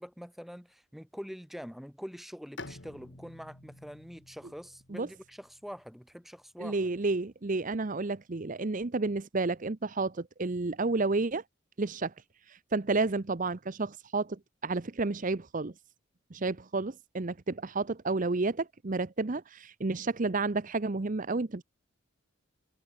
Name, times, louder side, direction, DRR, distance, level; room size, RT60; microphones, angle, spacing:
voice 1, 0.0-6.9, equal, ahead, 7.9 m, -45 dB
Bowed string instrument, 2.6-6.2, left 2 dB, 60° left, 3.1 m, -50 dB
voice 2, 6.6-11.4 11.8-12.1 12.5-15.7 16.3-21.6, right 3 dB, 40° right, 0.7 m, -31 dB
head